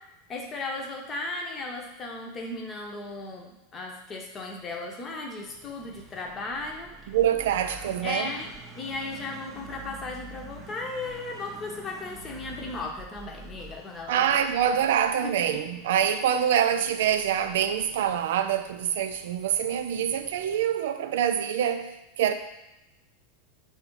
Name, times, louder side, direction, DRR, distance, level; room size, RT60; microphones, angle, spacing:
voice 1, 0.3-6.9 8.0-14.4 15.2-15.6, left 2 dB, 25° left, 0.8 m, -36 dB
sound 1, 5.5-20.7, right 3 dB, 20° right, 0.7 m, -48 dB
voice 2, 7.1-8.3 14.1-22.3, right 9 dB, 60° right, 0.3 m, -25 dB
3.5 x 2.6 x 4.6 m
figure-of-eight pair, 85°, 0 cm